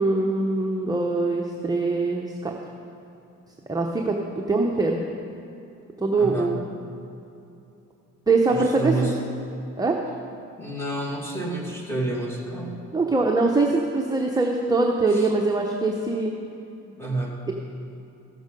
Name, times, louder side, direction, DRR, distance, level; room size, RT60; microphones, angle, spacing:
voice 1, 0.0-2.5 3.7-4.2 4.5-5.0 6.0-6.6 8.3-9.1 9.8-10.0 12.9-16.3, right 3 dB, 15° right, 0 dB, 0.8 m, -22 dB
voice 2, 6.2-6.6 8.5-9.2 10.6-12.8 15.1-15.3 16.8-17.5, right 2 dB, 10° left, -2 dB, 2.2 m, -29 dB
14.0 x 7.0 x 5.3 m, 2.8 s
cardioid pair, 90°, 30 cm